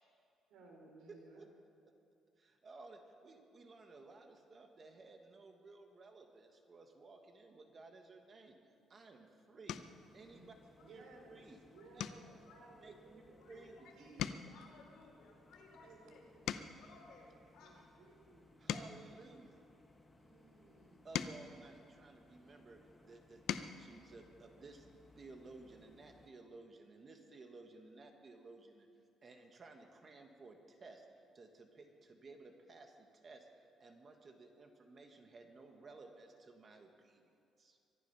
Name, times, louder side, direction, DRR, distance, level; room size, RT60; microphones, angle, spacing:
voice 1, 0.5-1.4 10.3-10.5 10.8-14.6 15.8-16.5 17.6-18.5 20.2-21.1, right 2 dB, 75° right, 1 dB, 3.7 m, -60 dB
voice 2, 1.1-1.5 1.8-1.9 2.4-8.6 8.9-9.8 10.1-10.5 10.9-11.0 11.3-11.6 12.8-13.7 18.6-19.6 21.0-24.9 25.2-28.9 29.2-37.2 37.6-37.8, right 3 dB, 30° right, 4 dB, 1.4 m, -56 dB
sound 1, 8.8-9.1 9.6-10.1 10.6-10.9 11.2-11.4 11.9-13.8 14.1-17.0 17.6-20.1 20.7-22.6 23.1-23.8 25.2-25.3 25.6-25.8, left 9 dB, 65° left, 0.6 m, -45 dB
sound 2, 9.7-26.3, left 2 dB, 10° left, 1.2 m, -65 dB
voice 3, 10.8-11.9 12.5-12.7 13.4-16.2 16.8-17.8, left 3 dB, 80° left, -2 dB, 4.7 m, -61 dB
24.5 x 10.5 x 5.7 m, 2.5 s
cardioid pair, 165°, 0 cm